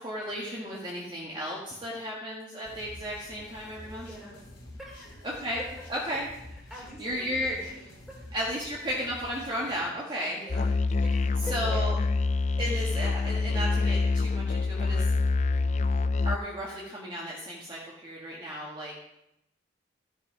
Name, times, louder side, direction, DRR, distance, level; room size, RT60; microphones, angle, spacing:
voice 1, 0.0-4.1 5.2-5.6 5.9-6.3 7.0-7.8 8.3-10.4 11.5-12.0 12.6-15.1 16.2-18.9, equal, 25° right, -5 dB, 1.6 m, -34 dB
sound 1, 2.6-9.7, left 1 dB, 60° left, 3.4 m, -48 dB
voice 2, 4.0-4.5 4.8-5.3 5.6-5.7 6.5-7.7 8.1-8.3 10.3-10.7 11.0-11.6, equal, ahead, -3 dB, 2.7 m, -45 dB
Musical instrument, 10.5-16.4, left 3 dB, 35° left, 0.3 m, -26 dB
13.5 x 5.6 x 5.4 m, 0.83 s
head